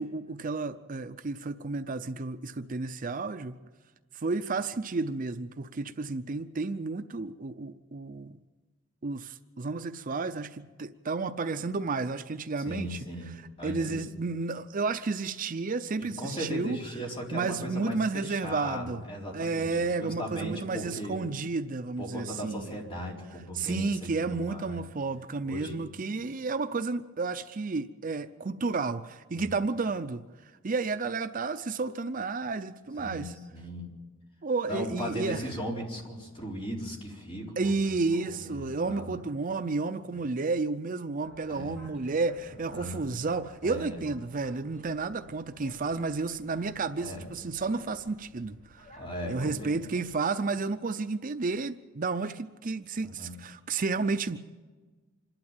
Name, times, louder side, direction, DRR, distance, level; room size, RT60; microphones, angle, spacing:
voice 1, 0.0-3.5 4.1-8.4 9.0-13.0 13.3-16.8 17.3-19.0 19.3-22.8 23.5-30.2 30.6-33.3 34.4-35.4 37.6-48.9 49.3-54.4, right 3 dB, 40° right, 0.6 m, -32 dB
voice 2, 12.6-14.0 16.0-19.7 20.0-21.2 22.0-24.8 25.5-25.8 29.3-29.5 33.0-33.9 34.7-39.2 41.5-41.9 42.7-43.1 43.6-44.0 47.0-47.2 49.0-49.7 53.0-53.3, equal, 25° left, 4.2 m, -38 dB
Boat Water vehicle, 41.2-50.2, equal, 45° left, 4.9 m, -55 dB
26.5 x 12.0 x 9.0 m
head